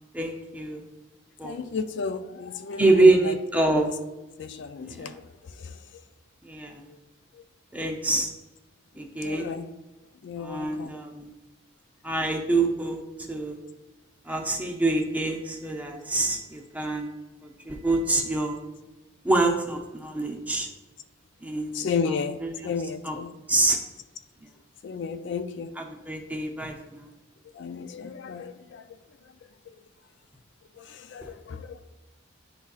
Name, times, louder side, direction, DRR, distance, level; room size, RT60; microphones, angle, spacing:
voice 1, 0.1-0.8 1.4-1.7 2.8-3.9 4.8-5.2 6.4-6.8 7.7-8.3 9.0-9.5 10.4-11.3 12.0-13.0 13.3-13.6 14.3-17.1 17.4-18.6 19.2-20.7 21.4-22.1 22.4-22.7 23.0-23.2 23.5-23.8 25.8-27.1 31.2-31.3, right 2 dB, 5° right, 2 dB, 0.6 m, -25 dB
voice 2, 1.4-3.8 4.4-5.2 5.6-5.7 9.2-9.7 10.2-11.0 21.7-22.4 22.6-23.3 24.8-25.8 27.6-28.8 30.8-31.8, left 5 dB, 55° left, 10 dB, 0.3 m, -33 dB
10.5 x 3.9 x 2.4 m, 1.1 s
head